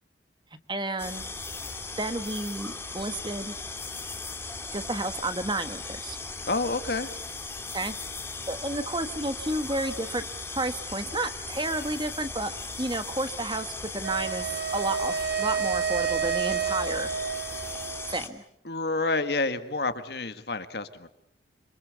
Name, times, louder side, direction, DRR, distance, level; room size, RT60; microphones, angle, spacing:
voice 1, 0.7-1.2 2.0-3.6 4.7-6.2 7.7-7.9 8.5-10.2 10.5-12.5 12.8-17.1 18.1-18.4, right 2 dB, 25° right, 10 dB, 1.5 m, -31 dB
sound 1, 1.0-18.3, left 3 dB, 15° left, 2.4 m, -38 dB
voice 2, 6.4-7.1 18.6-21.1, left 3 dB, 65° left, 10 dB, 1.8 m, -29 dB
Wind instrument woodwind instrument, 14.0-18.2, right 7 dB, 60° right, 2.2 m, -30 dB
27.5 x 25.5 x 8.2 m, 0.73 s
head